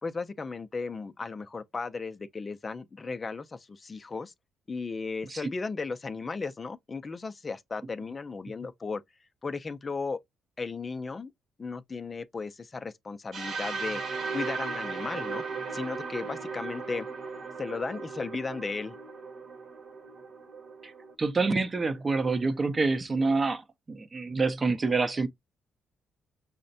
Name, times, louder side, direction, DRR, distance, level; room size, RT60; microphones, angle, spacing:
voice 1, 0.0-4.3 4.7-9.0 9.4-10.2 10.6-11.3 11.6-14.0 14.3-15.4 15.7-17.1 17.6-18.9, left 4 dB, 30° left, 0.4 m, -35 dB
sound 1, 13.3-21.1, right 4 dB, 60° right, 0.9 m, -37 dB
voice 2, 21.2-25.3, right 3 dB, 30° right, 0.6 m, -27 dB
5.6 x 2.1 x 2.6 m
cardioid pair, 90°, 0 cm